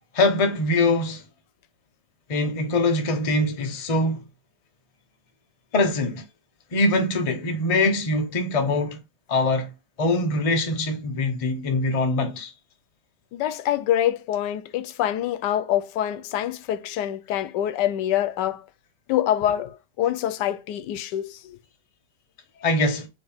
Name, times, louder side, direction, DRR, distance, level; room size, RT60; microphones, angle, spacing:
voice 1, 0.1-1.2 2.3-4.2 5.7-6.2 6.7-9.0 9.3-9.7 10.0-12.5 22.6-23.1, left 2 dB, 40° left, 0.4 m, -23 dB
voice 2, 13.3-18.6 19.1-21.6, left 11 dB, 90° left, 1.2 m, -25 dB
4.4 x 3.2 x 3.4 m
omnidirectional pair, 1.8 m